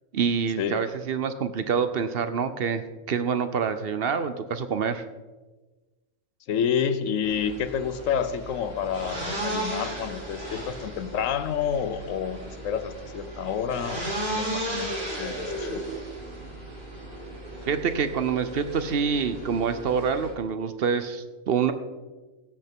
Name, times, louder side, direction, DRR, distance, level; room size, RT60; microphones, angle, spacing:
voice 1, 0.1-5.0 17.6-21.7, right 6 dB, 55° right, 11 dB, 0.8 m, -26 dB
voice 2, 6.5-15.8, left 7 dB, 75° left, 12 dB, 1.1 m, -29 dB
sound 1, 7.2-20.3, right 1 dB, 75° right, 3.5 m, -35 dB
16.5 x 7.9 x 3.7 m, 1.2 s
omnidirectional pair, 1.4 m